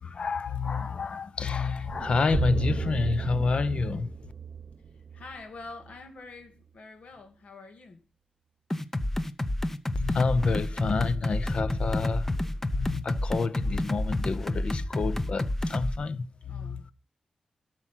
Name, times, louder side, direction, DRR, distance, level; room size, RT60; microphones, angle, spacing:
voice 1, 0.0-4.1 9.9-12.3 12.7-16.9, left 4 dB, 50° left, 0.7 m, -29 dB
sound 1, 1.9-6.0, right 7 dB, 60° right, 0.7 m, -34 dB
voice 2, 4.9-8.0 16.5-16.9, left 3 dB, 70° left, 2.3 m, -46 dB
sound 2, 8.7-16.0, left 1 dB, 15° left, 0.6 m, -29 dB
12.5 x 6.2 x 5.7 m
wide cardioid pair, 165°, 2 cm